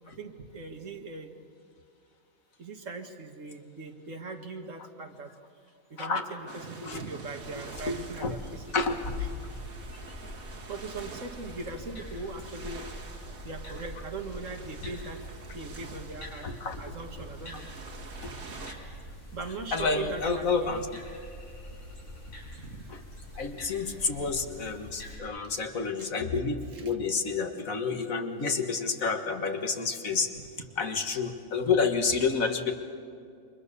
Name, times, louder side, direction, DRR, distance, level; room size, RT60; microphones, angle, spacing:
voice 1, 0.1-1.3 2.6-5.3 5.9-8.8 10.7-12.9 13.4-15.2 15.5-16.5 16.8-17.7 19.3-20.9 22.5-22.9 26.0-26.1 26.7-26.8, right 3 dB, 65° right, 5 dB, 2.1 m, -40 dB
sound 1, 6.5-18.7, right 4 dB, 85° right, 2.3 m, -48 dB
sound 2, 7.4-25.2, left 1 dB, 60° left, 7.4 m, -43 dB
voice 2, 7.9-8.4 8.7-9.0 16.4-16.9 18.2-18.3 19.7-20.9 22.9-23.0 23.4-30.3 30.8-32.7, left 4 dB, 75° left, 6 dB, 2.0 m, -29 dB
28.5 x 24.5 x 6.9 m, 2.5 s
omnidirectional pair, 1.4 m